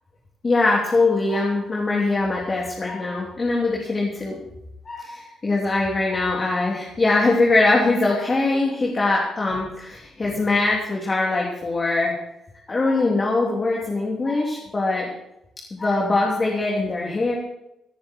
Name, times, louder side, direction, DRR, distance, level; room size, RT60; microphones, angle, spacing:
voice 1, 0.4-4.4 4.8-12.1 12.7-15.1 15.7-17.3, left 3 dB, 30° left, -2 dB, 3.0 m, -22 dB
18.5 x 10.0 x 4.5 m, 0.87 s
cardioid pair, 90°, 0 cm